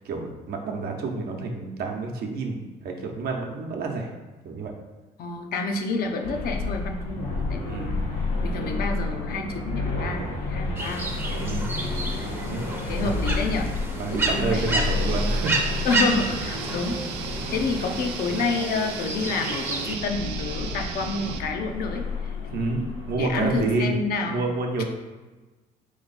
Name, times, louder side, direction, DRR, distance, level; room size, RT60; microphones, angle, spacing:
voice 1, 0.0-4.1 4.4-4.7 7.7-8.0 11.3-11.7 12.5-12.7 13.0-13.2 14.0-15.9 22.5-24.0 24.2-24.8, right 3 dB, 65° right, 2 dB, 0.8 m, -29 dB
voice 2, 5.2-8.1 8.4-11.0 11.4-11.6 12.2-12.4 12.9-13.7 14.1-14.9 15.8-17.0 17.5-22.3 23.1-24.4, left 3 dB, 65° left, 4 dB, 0.6 m, -29 dB
sound 1, 6.2-23.8, left 3 dB, 90° left, 1.1 m, -31 dB
sound 2, 10.8-20.0, right 2 dB, 15° right, 0.7 m, -31 dB
sound 3, 14.5-21.4, right 7 dB, 85° right, 0.5 m, -35 dB
4.3 x 3.1 x 4.0 m, 1.2 s
cardioid pair, 110°, 17 cm